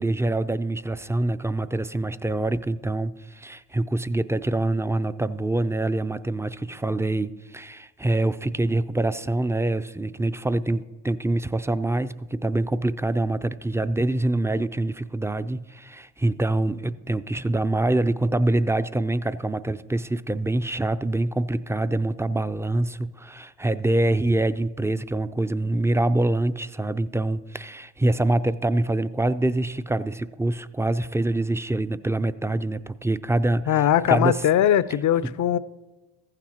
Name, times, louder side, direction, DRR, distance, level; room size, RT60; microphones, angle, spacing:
voice 1, 0.0-34.5 35.2-35.4, right 2 dB, 5° right, 0.3 m, -25 dB
voice 2, 33.7-35.6, left 10 dB, 50° left, 0.5 m, -20 dB
15.0 x 9.1 x 2.9 m
supercardioid pair, 50°, 39 cm